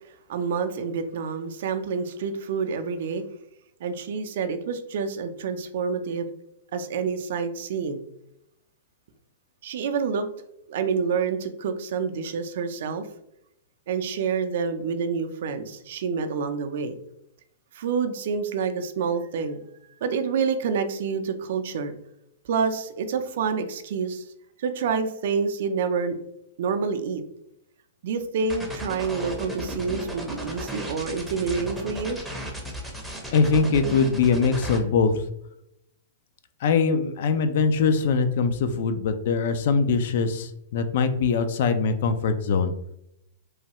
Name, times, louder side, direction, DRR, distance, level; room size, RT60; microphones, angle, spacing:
voice 1, 0.3-3.2 3.8-6.3 6.7-8.0 9.6-10.3 10.7-13.1 13.9-16.9 17.7-21.9 22.4-24.3 24.6-26.2 26.6-27.2 28.0-32.2, right 5 dB, 65° right, 9 dB, 0.4 m, -28 dB
sound 1, 28.5-34.8, right 1 dB, ahead, 0.6 m, -34 dB
voice 2, 33.3-35.1 36.6-42.7, left 5 dB, 60° left, 9 dB, 0.3 m, -22 dB
3.1 x 2.2 x 2.8 m, 0.79 s
hypercardioid pair, 125°, 0 cm